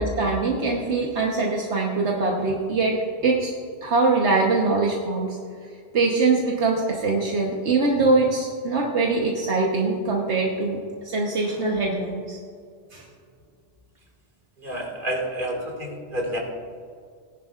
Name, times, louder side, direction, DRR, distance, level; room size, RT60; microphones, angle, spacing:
voice 1, 0.0-3.0 3.2-5.4 5.9-12.4 12.9-13.0, right 3 dB, 70° right, -1 dB, 1.4 m, -23 dB
voice 2, 14.6-16.4, right 1 dB, 45° right, 0 dB, 2.2 m, -29 dB
18.5 x 11.0 x 2.4 m, 2.2 s
omnidirectional pair, 1.2 m